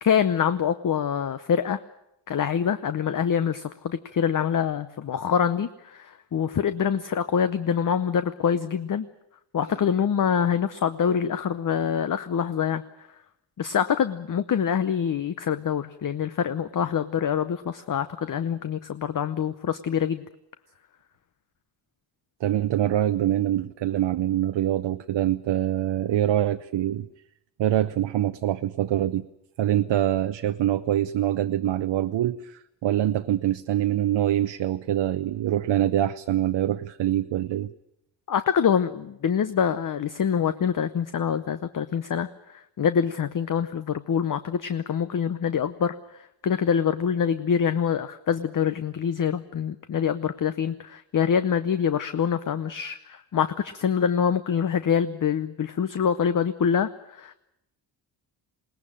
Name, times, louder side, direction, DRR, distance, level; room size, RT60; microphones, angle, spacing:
voice 1, 0.0-1.8 2.3-9.1 9.5-12.8 13.6-20.2 38.3-57.3, left 7 dB, 45° left, 12 dB, 0.8 m, -25 dB
voice 2, 22.4-27.1 27.6-29.3 29.6-37.7, right 12 dB, 75° right, 9 dB, 0.8 m, -24 dB
21.5 x 19.0 x 8.8 m, 0.84 s
wide cardioid pair, 115°, 45 cm